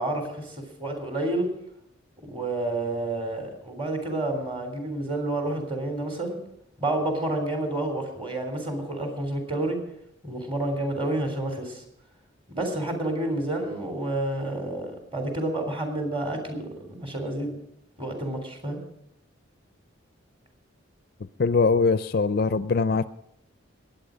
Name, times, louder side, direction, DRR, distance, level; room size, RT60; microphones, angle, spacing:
voice 1, 0.0-1.5 2.3-6.4 6.8-9.8 10.2-11.8 12.5-17.6 18.0-18.8, right 2 dB, 25° right, 3 dB, 3.2 m, -29 dB
voice 2, 21.4-23.1, left 4 dB, 50° left, 13 dB, 0.4 m, -22 dB
21.5 x 8.9 x 5.1 m, 0.78 s
head